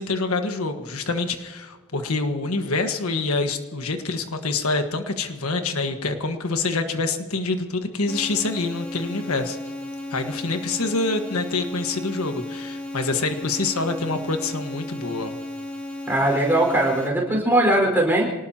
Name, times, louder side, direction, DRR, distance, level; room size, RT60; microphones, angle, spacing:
voice 1, 0.0-9.6 10.1-15.3, left 3 dB, 85° left, 6 dB, 1.5 m, -26 dB
sound 1, 8.1-17.1, left 1 dB, 5° left, 2.2 m, -34 dB
voice 2, 16.1-18.3, right 1 dB, 10° right, -1 dB, 4.7 m, -20 dB
26.5 x 19.0 x 2.9 m, 1.3 s
head